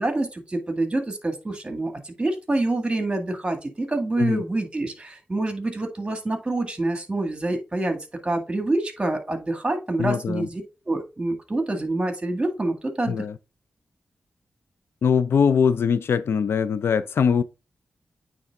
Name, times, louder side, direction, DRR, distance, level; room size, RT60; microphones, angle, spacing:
voice 1, 0.0-13.2, right 2 dB, 25° right, 2.0 m, -27 dB
voice 2, 10.0-10.5 13.1-13.4 15.0-17.4, left 6 dB, 80° left, 0.4 m, -22 dB
8.8 x 3.4 x 3.7 m
cardioid pair, 60°, 4 cm